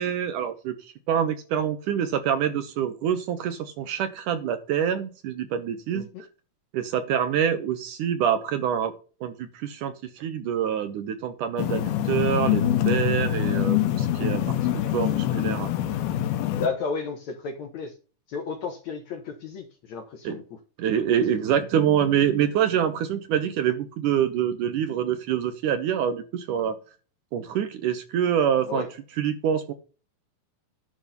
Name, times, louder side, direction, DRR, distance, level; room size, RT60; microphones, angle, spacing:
voice 1, 0.0-6.1 6.7-8.9 9.2-14.4 14.7-15.7 20.2-20.4 20.8-26.8 27.3-28.9 29.2-29.7, right 9 dB, 70° right, 9 dB, 2.2 m, -26 dB
voice 2, 5.9-6.3 16.5-17.9 18.3-20.4 28.7-28.9, left 4 dB, 65° left, 6 dB, 1.9 m, -32 dB
sound 1, 11.6-16.7, left 11 dB, 85° left, 2.9 m, -24 dB
11.0 x 3.9 x 6.7 m, 0.35 s
omnidirectional pair, 4.3 m